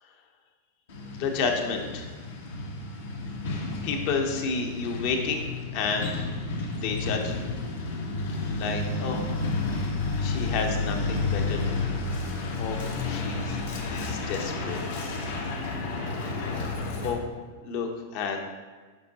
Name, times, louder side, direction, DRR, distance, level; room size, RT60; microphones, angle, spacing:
Truck, 0.9-17.1, left 3 dB, 75° left, 1.3 m, -31 dB
voice 1, 1.2-2.1 3.8-6.1 6.7-7.5 8.6-9.2 10.2-11.9 12.6-12.8 13.0-13.6 13.9-14.8 17.0-17.2 17.6-18.4, left 5 dB, 55° left, 3 dB, 1.0 m, -30 dB
7.1 x 5.2 x 2.9 m, 1.4 s
hypercardioid pair, 105°, 0 cm